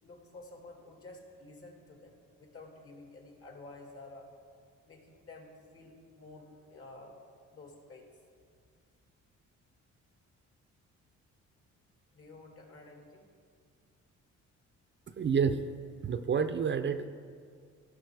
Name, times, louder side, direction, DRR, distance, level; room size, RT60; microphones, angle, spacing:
voice 1, 0.0-4.3 4.8-7.2 7.5-8.1 12.1-13.2, left 2 dB, 50° left, 1 dB, 2.4 m, -51 dB
voice 2, 15.2-15.6 16.0-17.1, right 6 dB, 40° right, 9 dB, 0.5 m, -28 dB
15.0 x 6.0 x 4.8 m, 2.1 s
cardioid pair, 90°, 30 cm